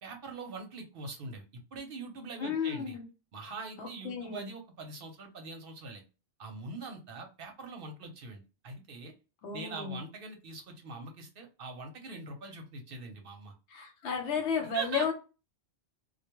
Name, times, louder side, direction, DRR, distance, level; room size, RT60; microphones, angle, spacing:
voice 1, 0.0-1.4 1.7-3.0 3.3-6.0 6.4-9.1 9.5-13.5 14.6-15.1, right 3 dB, 60° right, 0.8 m, -43 dB
voice 2, 2.4-3.0 3.8-4.5 9.4-10.0 13.7-15.1, left 5 dB, 80° left, 1.1 m, -33 dB
2.2 x 2.2 x 2.9 m
omnidirectional pair, 1.2 m